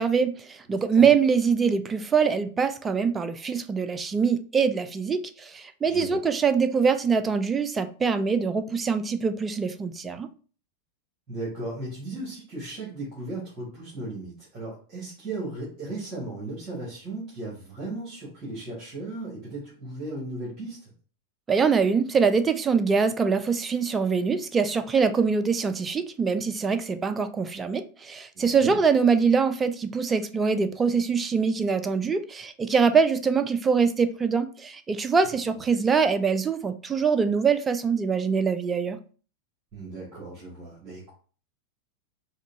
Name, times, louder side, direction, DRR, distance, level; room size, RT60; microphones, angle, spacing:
voice 1, 0.0-10.3 21.5-39.0, right 5 dB, 15° right, 0.4 m, -24 dB
voice 2, 5.9-6.2 11.3-20.9 28.3-28.8 35.5-35.8 39.7-41.1, right 2 dB, 35° right, 1.6 m, -36 dB
4.8 x 2.2 x 2.7 m
figure-of-eight pair, 90°, 0 cm